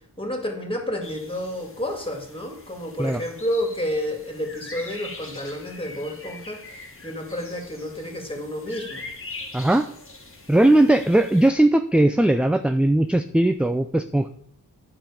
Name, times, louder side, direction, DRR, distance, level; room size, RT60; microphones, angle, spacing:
voice 1, 0.2-6.6 7.0-9.1, equal, 15° left, 3 dB, 2.2 m, -30 dB
sound 1, 1.0-11.5, left 3 dB, 30° left, 1.5 m, -42 dB
voice 2, 9.5-9.9 10.5-14.3, right 1 dB, 5° right, 8 dB, 0.3 m, -19 dB
9.1 x 6.1 x 5.0 m, 0.69 s
wide cardioid pair, 55°, 41 cm